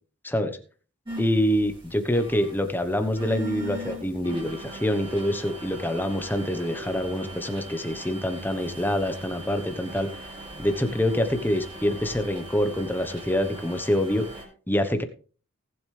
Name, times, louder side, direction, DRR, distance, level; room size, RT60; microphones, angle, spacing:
voice 1, 0.2-0.6 1.2-10.1 10.6-14.3 14.7-15.0, equal, 10° left, 8 dB, 1.1 m, -26 dB
sound 1, 1.0-14.4, equal, 25° right, 4.7 m, -40 dB
19.0 x 7.7 x 3.4 m, 0.39 s
head